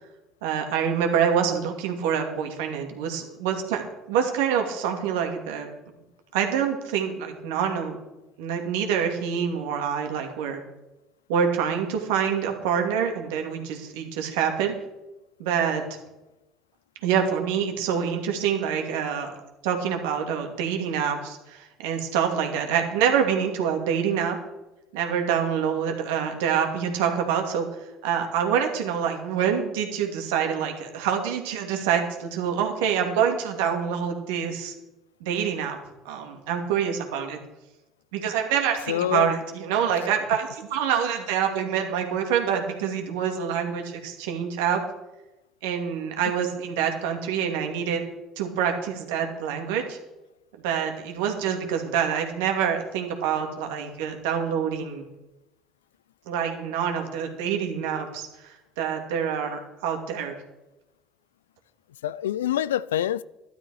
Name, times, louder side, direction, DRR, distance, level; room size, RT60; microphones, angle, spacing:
voice 1, 0.4-5.7 6.3-8.0 8.4-10.6 11.3-14.8 15.4-15.8 17.0-19.4 19.6-24.4 24.9-27.7 28.0-34.7 35.2-35.8 36.0-37.4 38.1-44.8 45.6-48.0 48.4-50.0 50.6-55.0 56.3-60.3, right 8 dB, 75° right, 2.4 m, -26 dB
voice 2, 38.9-39.3 62.0-63.2, left 12 dB, 80° left, 0.4 m, -26 dB
13.0 x 12.0 x 4.9 m
hypercardioid pair, 60°, 0 cm